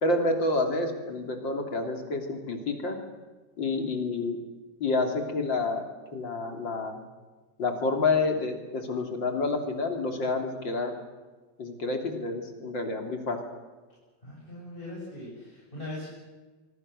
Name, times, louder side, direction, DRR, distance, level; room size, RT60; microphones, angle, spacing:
voice 1, 0.0-3.0 3.6-4.4 4.8-5.8 6.1-7.0 7.6-10.9 11.6-13.4, left 3 dB, 75° left, 4 dB, 3.9 m, -28 dB
voice 2, 14.2-16.1, left 1 dB, 25° left, -6 dB, 7.7 m, -40 dB
25.0 x 24.5 x 6.8 m, 1.3 s
omnidirectional pair, 2.0 m